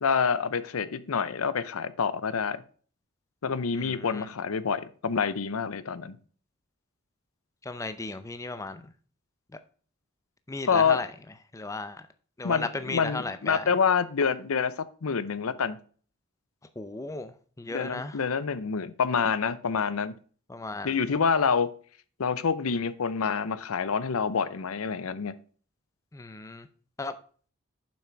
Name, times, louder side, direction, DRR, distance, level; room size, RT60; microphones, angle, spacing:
voice 1, 0.0-2.6 3.4-6.2 10.7-11.0 12.4-14.7 15.0-15.8 17.7-20.1 20.8-21.7 22.2-25.3, left 6 dB, 90° left, 0.6 m, -27 dB
voice 2, 3.7-4.3 7.6-8.8 10.5-11.1 11.5-12.0 12.4-13.6 16.8-18.2 20.5-21.0 26.1-26.7 27.0-27.1, left 3 dB, 15° left, 0.5 m, -35 dB
7.3 x 5.9 x 4.5 m
head